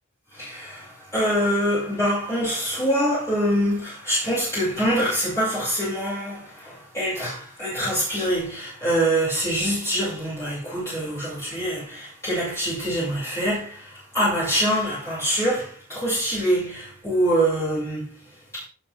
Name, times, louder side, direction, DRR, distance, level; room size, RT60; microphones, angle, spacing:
voice 1, 0.3-18.3 18.5-18.6, equal, 15° left, 6.7 m, -25 dB
18.5 x 7.3 x 3.7 m
head